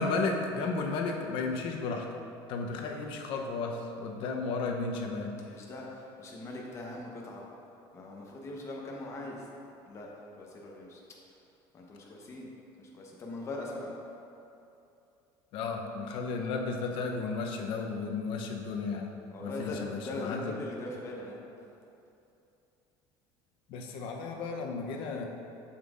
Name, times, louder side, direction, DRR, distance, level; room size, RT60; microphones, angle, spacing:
voice 1, 0.0-2.1 2.5-5.5 15.5-19.1 19.4-20.5 23.7-25.3, left 4 dB, 65° left, 2 dB, 0.8 m, -33 dB
voice 2, 5.5-7.5 7.9-9.5 9.9-11.0 11.3-11.4 11.7-12.5 12.8-13.9 19.3-21.5, left 2 dB, 30° left, -2 dB, 1.0 m, -41 dB
7.2 x 7.2 x 2.5 m, 2.7 s
cardioid pair, 145°, 10 cm